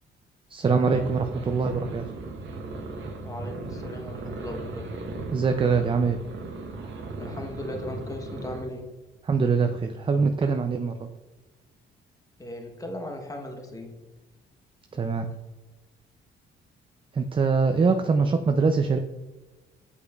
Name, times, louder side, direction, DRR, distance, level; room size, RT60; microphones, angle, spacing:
voice 1, 0.5-2.1 5.3-6.2 9.2-11.1 14.9-15.3 17.1-19.0, right 4 dB, 25° right, 6 dB, 0.4 m, -23 dB
sound 1, 0.8-8.6, right 3 dB, 70° right, 1.1 m, -37 dB
voice 2, 3.2-4.9 7.2-8.9 12.4-14.0, left 1 dB, 15° left, 3 dB, 1.0 m, -37 dB
8.2 x 5.0 x 2.4 m, 1.2 s
cardioid pair, 90°, 20 cm